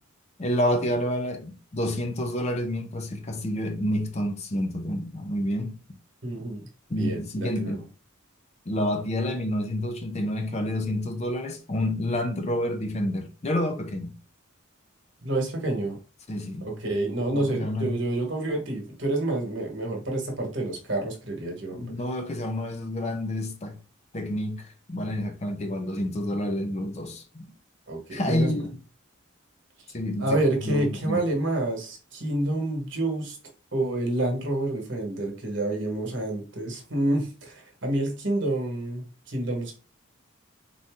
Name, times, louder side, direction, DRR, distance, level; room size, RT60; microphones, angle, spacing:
voice 1, 0.4-5.8 6.9-7.8 8.7-14.1 16.3-16.7 17.3-18.0 21.7-23.8 24.1-27.5 28.1-28.8 29.9-31.2, left 1 dB, 30° left, 0.5 m, -29 dB
voice 2, 6.2-7.8 15.2-16.0 16.6-21.9 27.9-28.6 30.2-33.4 33.7-39.7, right 1 dB, 60° right, 1.2 m, -28 dB
3.9 x 2.7 x 3.5 m
head